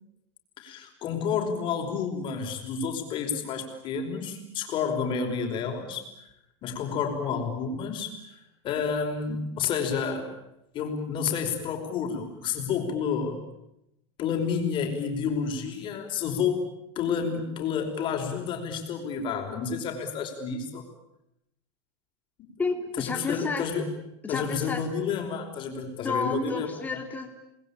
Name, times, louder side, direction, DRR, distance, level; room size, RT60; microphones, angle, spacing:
voice 1, 0.6-6.0 6.6-8.4 8.6-10.3 10.7-13.4 14.2-16.7 17.0-20.9 22.4-22.5 23.0-23.9 24.3-26.7, left 6 dB, 35° left, 4 dB, 5.3 m, -30 dB
voice 2, 22.6-23.7 24.2-24.8 26.0-27.3, left 4 dB, 10° left, 3 dB, 3.5 m, -31 dB
28.0 x 21.0 x 8.9 m, 0.83 s
supercardioid pair, 150°, 15 cm